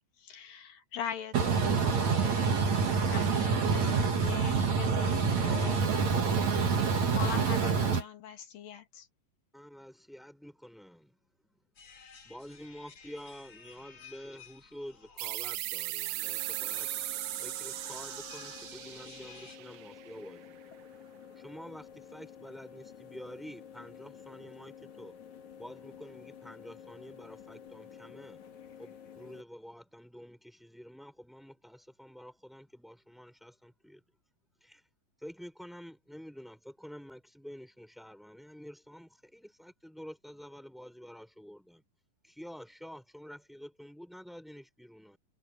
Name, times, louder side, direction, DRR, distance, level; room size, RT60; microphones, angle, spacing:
voice 1, 0.2-5.9 7.1-9.1, left 9 dB, 80° left, 3.9 m, -42 dB
voice 2, 1.3-8.0, right 5 dB, 60° right, 2.8 m, -27 dB
voice 3, 9.5-11.1 12.2-16.9 17.4-20.8 21.4-25.1 25.6-28.4 28.8-34.0 34.6-34.8 35.2-41.8 42.2-45.2, equal, ahead, 5.0 m, -48 dB
sound 1, 11.7-19.6, left 5 dB, 40° left, 3.2 m, -53 dB
sound 2, 15.2-20.5, right 19 dB, 80° right, 2.0 m, -38 dB
sound 3, 16.2-29.4, left 8 dB, 60° left, 3.4 m, -51 dB
omnidirectional pair, 4.0 m